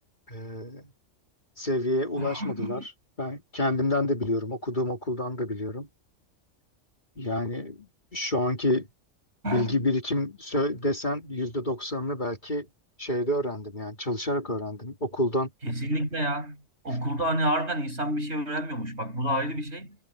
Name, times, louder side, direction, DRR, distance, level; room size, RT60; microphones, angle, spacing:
voice 1, 0.3-0.9 1.6-2.9 3.2-5.9 7.2-8.9 9.4-12.7 13.0-15.5, left 1 dB, 40° left, 2.8 m, -28 dB
voice 2, 2.2-2.9 9.4-9.8 15.6-20.0, right 1 dB, 60° right, 6.4 m, -29 dB
omnidirectional pair, 1.3 m